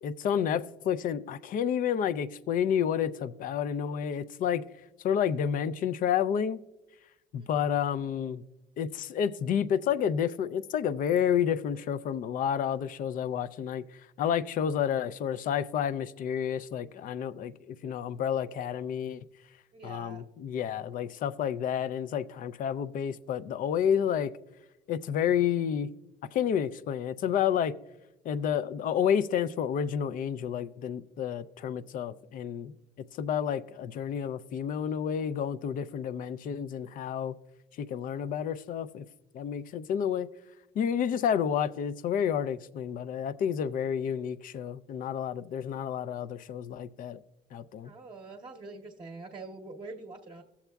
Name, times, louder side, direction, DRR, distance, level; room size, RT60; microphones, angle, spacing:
voice 1, 0.0-4.6 5.0-6.6 7.3-8.4 8.8-19.3 19.8-24.3 24.9-25.9 26.3-27.7 28.2-32.7 33.1-37.3 37.7-39.1 39.3-40.3 40.7-47.2 47.5-47.9, left 8 dB, 55° left, 15 dB, 0.4 m, -30 dB
voice 2, 19.7-20.2 47.8-50.4, right 3 dB, 30° right, 1 dB, 0.8 m, -45 dB
16.5 x 7.1 x 2.3 m, 0.99 s
cardioid pair, 110°, 17 cm